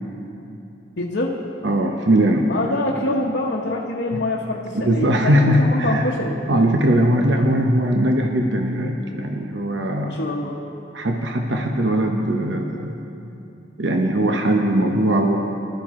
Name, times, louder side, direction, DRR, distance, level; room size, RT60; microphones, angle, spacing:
voice 1, 1.0-1.3 2.5-6.3 10.0-10.6, left 2 dB, 90° left, -3 dB, 1.0 m, -25 dB
voice 2, 1.6-2.5 4.1-4.2 4.7-6.0 6.5-10.2 10.9-13.0 13.8-15.4, right 1 dB, 90° right, 3 dB, 0.9 m, -20 dB
19.5 x 12.5 x 3.7 m, 2.8 s
head